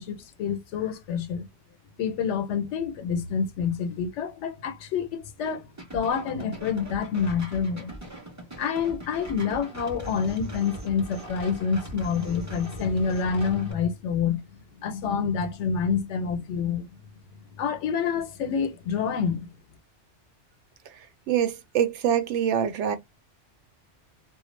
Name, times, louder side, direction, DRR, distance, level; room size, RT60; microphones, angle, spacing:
voice 1, 0.0-1.5 2.0-5.7 5.9-7.9 8.6-14.4 14.8-16.9 17.6-19.5, left 6 dB, 90° left, 0.9 m, -27 dB
sound 1, 5.8-13.7, right 1 dB, 15° right, 0.7 m, -41 dB
voice 2, 21.3-23.0, right 9 dB, 85° right, 0.9 m, -24 dB
2.3 x 2.0 x 3.0 m
omnidirectional pair, 1.2 m